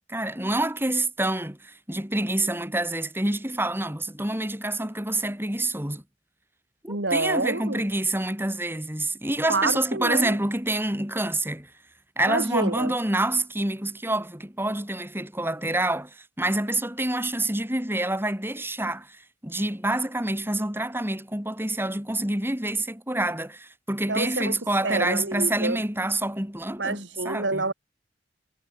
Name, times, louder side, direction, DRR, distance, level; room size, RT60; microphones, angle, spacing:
voice 1, 0.1-6.0 6.8-11.7 12.2-27.6, right 1 dB, 10° right, 5.3 m, -27 dB
voice 2, 6.9-7.8 9.5-10.4 12.3-12.9 24.1-24.6 24.8-25.8 26.8-27.7, right 3 dB, 70° right, 3.3 m, -27 dB
head